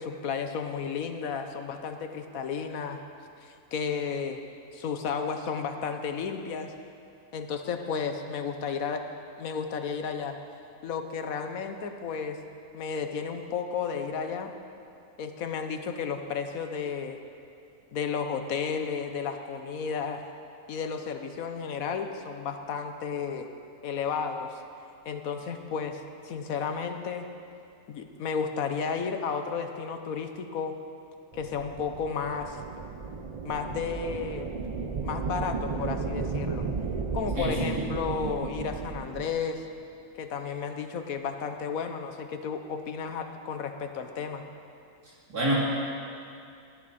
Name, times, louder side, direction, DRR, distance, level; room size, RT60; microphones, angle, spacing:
voice 1, 0.0-3.0 3.4-4.4 4.7-6.7 7.3-9.0 9.4-10.4 10.8-12.4 12.7-14.5 15.2-17.2 17.9-20.2 20.7-23.5 23.8-24.6 25.0-27.3 27.9-30.8 31.3-32.6 33.4-34.5 35.0-36.7 37.1-39.6 40.1-44.4, left 6 dB, 70° left, 7 dB, 1.2 m, -33 dB
sound 1, 31.3-39.4, right 4 dB, 40° right, 0.5 m, -34 dB
voice 2, 37.4-37.8 45.3-45.5, right 1 dB, 80° right, -5 dB, 3.7 m, -28 dB
17.5 x 12.5 x 4.2 m, 2.5 s
omnidirectional pair, 1.6 m